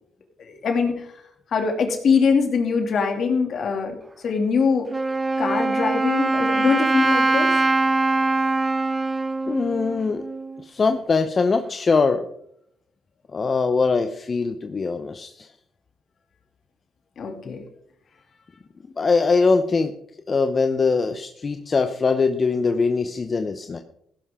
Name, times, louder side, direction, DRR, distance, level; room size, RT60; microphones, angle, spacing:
voice 1, 0.4-1.1 1.5-4.9 5.4-7.6 17.2-17.6, left 5 dB, 60° left, 3 dB, 2.6 m, -23 dB
Wind instrument woodwind instrument, 4.9-10.6, right 3 dB, 20° right, 0.6 m, -22 dB
voice 2, 9.5-10.3 10.6-12.3 13.3-15.5 17.4-17.6 19.0-19.9 20.3-23.8, left 4 dB, 35° left, 8 dB, 0.8 m, -22 dB
16.0 x 11.5 x 3.7 m, 0.72 s
cardioid pair, 90°, 0 cm